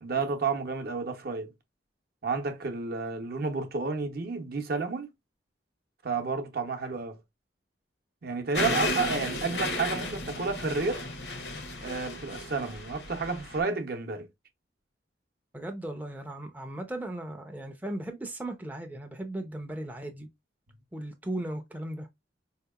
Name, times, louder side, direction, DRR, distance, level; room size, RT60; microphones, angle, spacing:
voice 1, 0.0-1.5 2.2-5.1 6.0-7.2 8.2-11.0 11.8-14.3, right 4 dB, 60° right, 0.7 m, -31 dB
sound 1, 8.5-13.6, left 2 dB, 65° left, 0.8 m, -33 dB
voice 2, 15.5-20.3 20.9-22.1, right 1 dB, 10° right, 0.4 m, -37 dB
4.3 x 2.8 x 2.2 m
head